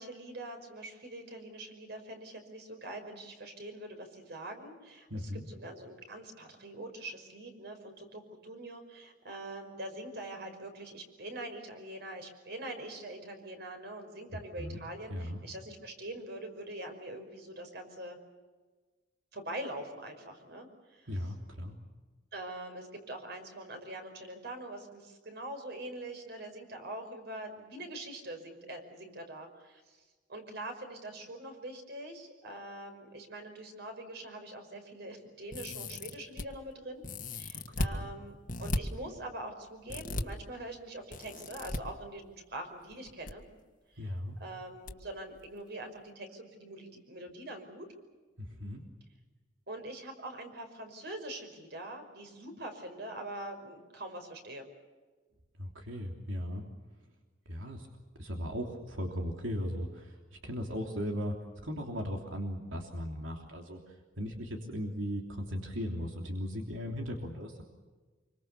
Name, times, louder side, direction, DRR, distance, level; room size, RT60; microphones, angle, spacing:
voice 1, 0.0-18.2 19.3-21.2 22.3-30.0 30.3-37.0 37.3-38.3 38.6-43.6 43.9-44.1 44.4-47.9 49.7-54.7, right 1 dB, 60° right, 6 dB, 5.5 m, -44 dB
voice 2, 5.1-5.4 14.6-14.8 15.1-15.4 21.1-21.8 37.8-38.1 44.0-44.4 48.4-48.8 55.6-56.6 57.4-57.9 58.2-61.3 61.6-67.6, equal, 85° right, 2 dB, 3.3 m, -37 dB
sound 1, 35.5-36.4 37.0-37.9 38.5-38.8 39.9-40.2 41.1-41.8 42.9-43.3 43.6-43.7 44.9-45.0 45.3-45.5, left 1 dB, 45° left, 1.8 m, -35 dB
26.5 x 24.5 x 6.9 m, 1.3 s
head